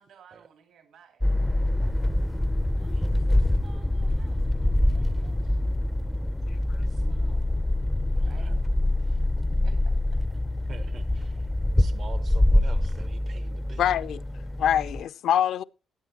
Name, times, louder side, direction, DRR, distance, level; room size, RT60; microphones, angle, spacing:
voice 1, 0.0-1.8 2.8-5.6 6.8-7.6 8.2-8.6 9.6-10.2, right 6 dB, 75° right, 2.5 m, -55 dB
sound 1, 1.2-15.0, left 1 dB, 5° left, 0.4 m, -25 dB
voice 2, 2.9-3.3 8.2-8.6 9.0-9.3 10.7-11.5 11.8-13.8, right 6 dB, 50° right, 0.7 m, -47 dB
voice 3, 13.8-14.2 14.6-15.6, left 10 dB, 75° left, 0.5 m, -24 dB
16.0 x 8.6 x 2.9 m
cardioid pair, 90°, 0 cm